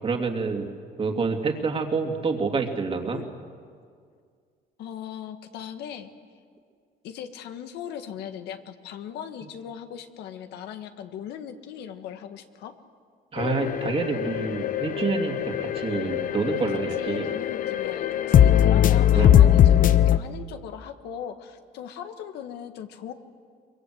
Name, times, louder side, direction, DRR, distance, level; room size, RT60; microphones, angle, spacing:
voice 1, 0.0-0.7 1.0-3.2 13.3-17.3 19.1-19.4, right 4 dB, 35° right, 3 dB, 2.7 m, -27 dB
voice 2, 4.8-6.1 7.0-12.7 16.7-23.1, left 9 dB, 80° left, 7 dB, 1.6 m, -39 dB
sound 1, 13.4-20.2, left 10 dB, 55° left, 0.9 m, -20 dB
24.0 x 22.5 x 8.0 m, 2.1 s
cardioid pair, 110°, 17 cm